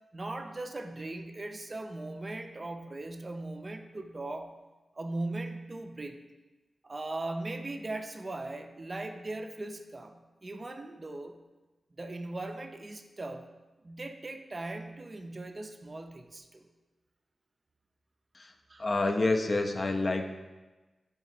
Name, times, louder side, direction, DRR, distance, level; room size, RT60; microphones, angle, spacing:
voice 1, 0.1-4.5 4.9-6.2 6.8-11.4 12.0-13.5 13.8-16.7 18.7-18.8, right 2 dB, 40° right, 6 dB, 0.3 m, -39 dB
voice 2, 18.8-20.3, left 2 dB, 45° left, 5 dB, 0.4 m, -28 dB
3.5 x 2.9 x 4.1 m, 1.2 s
cardioid pair, 60°, 0 cm